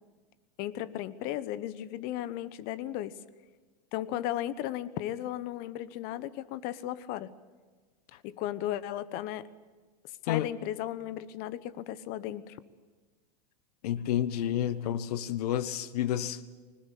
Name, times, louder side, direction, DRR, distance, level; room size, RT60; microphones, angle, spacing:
voice 1, 0.6-3.1 3.9-7.3 8.2-9.5 10.2-12.6, left 13 dB, 45° left, 1.1 m, -35 dB
voice 2, 13.8-16.4, left 11 dB, 65° left, 1.2 m, -30 dB
21.0 x 20.0 x 8.5 m
hypercardioid pair, 110°, 21 cm